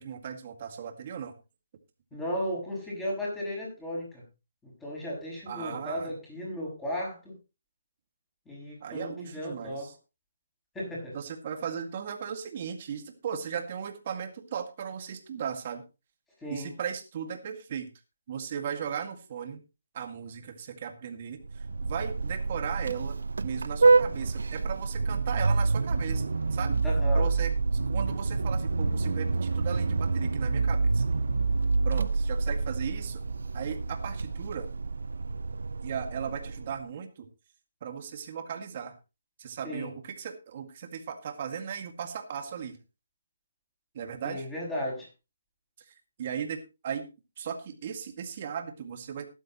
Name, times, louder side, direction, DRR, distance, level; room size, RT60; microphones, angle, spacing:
voice 1, 0.0-1.3 5.5-6.1 8.8-9.9 11.1-15.8 16.5-17.9 18.3-19.6 19.9-26.8 27.1-31.0 31.8-33.2 33.5-34.7 35.8-37.3 37.8-38.9 39.4-42.8 43.9-44.5 45.9-47.1 47.4-49.3, right 7 dB, 35° right, 6 dB, 2.0 m, -37 dB
voice 2, 2.1-4.2 4.6-7.3 8.5-9.9 10.7-11.2 16.4-16.7 26.8-27.2 39.6-39.9 44.2-45.1, equal, 5° left, -4 dB, 6.7 m, -35 dB
Vehicle horn car horn honking, 21.4-36.8, right 3 dB, 80° right, 0.8 m, -27 dB
15.5 x 11.5 x 3.0 m, 0.28 s
hypercardioid pair, 165°, 0 cm